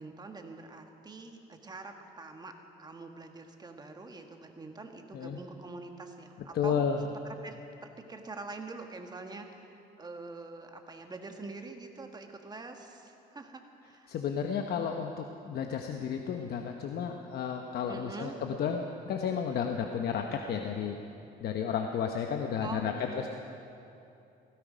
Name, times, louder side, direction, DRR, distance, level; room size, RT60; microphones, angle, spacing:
voice 1, 0.0-6.8 7.4-14.2 17.9-18.4 22.6-23.3, right 3 dB, 20° right, 4 dB, 1.5 m, -45 dB
voice 2, 6.5-7.0 14.1-21.0 21.4-23.3, left 7 dB, 65° left, 4 dB, 1.0 m, -32 dB
17.0 x 16.0 x 5.1 m, 2.8 s
cardioid pair, 115°, 18 cm